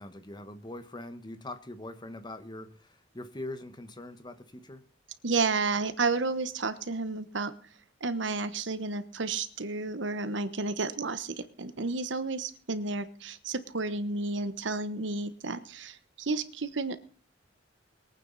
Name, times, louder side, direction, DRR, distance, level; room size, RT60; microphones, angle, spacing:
voice 1, 0.0-4.9, left 1 dB, 25° left, 1.3 m, -42 dB
voice 2, 5.2-7.5 8.0-17.0, right 3 dB, 75° right, 1.2 m, -31 dB
22.0 x 9.1 x 4.1 m
head